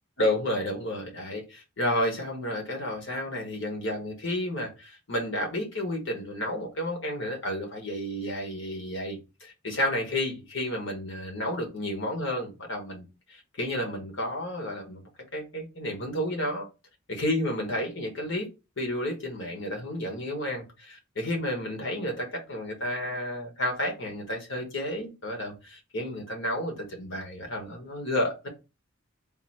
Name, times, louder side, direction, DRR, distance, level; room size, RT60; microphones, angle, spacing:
voice 1, 0.2-16.7 17.1-18.5 18.8-28.5, left 1 dB, 60° left, 1.4 m, -31 dB
3.8 x 2.7 x 4.2 m
head